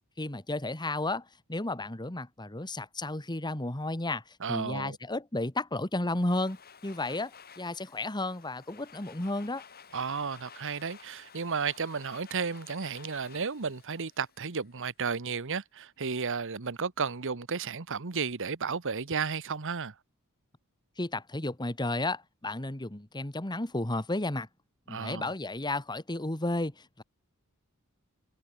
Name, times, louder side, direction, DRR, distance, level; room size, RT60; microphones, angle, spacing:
voice 1, 0.2-6.6 6.8-9.6 21.0-24.5 24.9-27.0, left 2 dB, 20° left, 1.7 m, -33 dB
voice 2, 4.4-5.0 9.9-19.9 24.9-25.3, right 5 dB, 60° right, 1.1 m, -33 dB
Domestic sounds home sounds, 6.0-14.9, left 6 dB, 45° left, 6.0 m, -54 dB
head